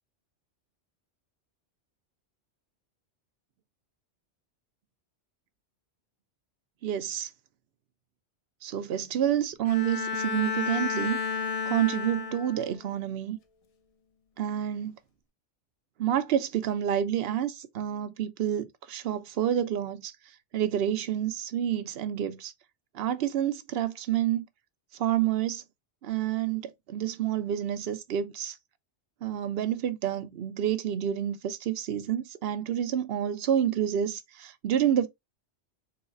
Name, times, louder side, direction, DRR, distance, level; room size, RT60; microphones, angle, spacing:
voice 1, 6.8-7.3 8.6-11.2 11.7-13.4 14.4-15.0 16.0-22.5 22.9-24.5 24.9-25.6 26.0-28.6 29.2-35.1, right 10 dB, 65° right, 0.8 m, -29 dB
Bowed string instrument, 9.6-12.8, left 5 dB, 55° left, 0.4 m, -32 dB
3.9 x 2.3 x 4.1 m
omnidirectional pair, 1.2 m